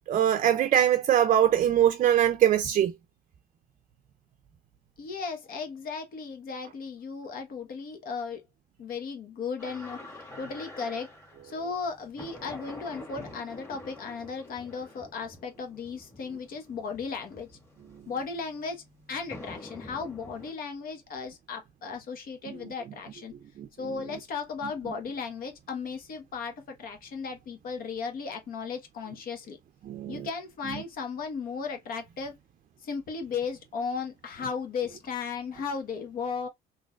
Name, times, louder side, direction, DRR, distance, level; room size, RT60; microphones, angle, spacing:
voice 1, 0.1-2.9 23.6-23.7 29.9-30.3, right 10 dB, 45° right, 0.5 m, -22 dB
voice 2, 5.0-8.4 8.8-10.0 10.3-11.1 11.4-17.5 18.1-18.8 19.1-23.3 23.8-29.6 30.1-32.3 32.8-36.5, left 5 dB, 60° left, 1.2 m, -35 dB
sound 1, 9.6-20.5, left 1 dB, 15° left, 1.8 m, -47 dB
3.8 x 2.8 x 2.4 m
cardioid pair, 110°, 17 cm